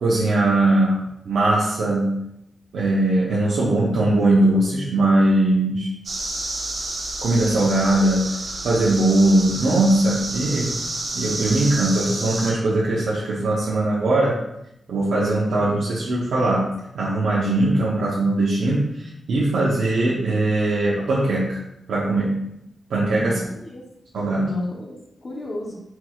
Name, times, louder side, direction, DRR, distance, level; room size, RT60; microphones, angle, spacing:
voice 1, 0.0-2.2 2.7-5.9 7.2-8.3 8.6-10.8 11.1-14.4 14.9-16.7 16.9-21.6 21.9-22.4 22.9-23.4 24.1-24.5, right 2 dB, 90° right, -7 dB, 0.8 m, -20 dB
sound 1, 6.0-12.5, right 2 dB, 55° right, 1.2 m, -30 dB
voice 2, 23.1-23.9 24.4-25.7, left 1 dB, 40° left, -2 dB, 0.9 m, -32 dB
4.5 x 4.5 x 2.4 m, 0.81 s
cardioid pair, 90°, 0 cm